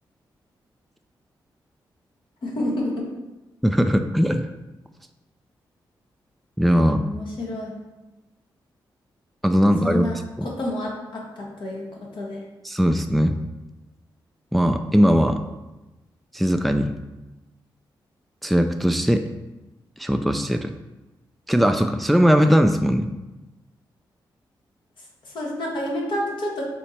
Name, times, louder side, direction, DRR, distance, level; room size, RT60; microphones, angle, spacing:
voice 1, 2.4-3.1 6.8-7.7 9.6-10.2 10.4-12.4 25.3-26.6, left 1 dB, 65° left, -3 dB, 1.2 m, -29 dB
voice 2, 3.6-4.5 6.6-7.0 9.4-10.5 12.6-13.4 14.5-15.4 16.3-16.9 18.4-19.3 20.0-20.7 21.5-23.1, equal, ahead, 6 dB, 0.3 m, -19 dB
4.4 x 2.8 x 4.3 m, 1.1 s
cardioid pair, 55°, 9 cm